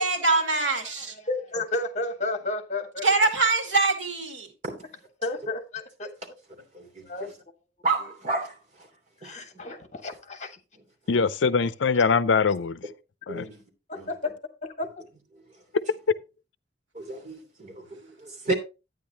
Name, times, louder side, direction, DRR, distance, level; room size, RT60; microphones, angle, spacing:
voice 1, 0.0-1.1 3.0-4.5, right 3 dB, 85° right, 2.4 m, -23 dB
voice 2, 0.8-3.1 5.2-6.1 7.0-7.3 9.2-10.6 11.9-12.0 13.9-14.3 14.6-15.0, left 2 dB, 40° left, 1.6 m, -32 dB
voice 3, 6.7-7.3 7.8-8.9 9.2-9.4 13.3-13.6 14.0-14.1 15.3-15.6 16.9-18.5, right 3 dB, 40° right, 3.0 m, -32 dB
voice 4, 11.1-12.8 13.3-13.4, left 5 dB, 80° left, 0.5 m, -22 dB
10.5 x 9.3 x 2.9 m
head